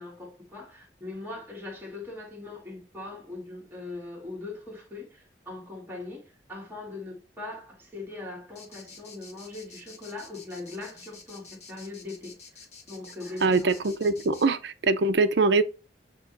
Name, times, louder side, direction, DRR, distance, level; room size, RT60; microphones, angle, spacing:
voice 1, 0.0-13.7, left 2 dB, 10° right, 2.0 m, -40 dB
sound 1, 8.5-14.4, left 5 dB, 35° left, 1.6 m, -48 dB
voice 2, 13.4-15.6, right 3 dB, 70° right, 0.6 m, -23 dB
8.5 x 3.0 x 3.9 m
head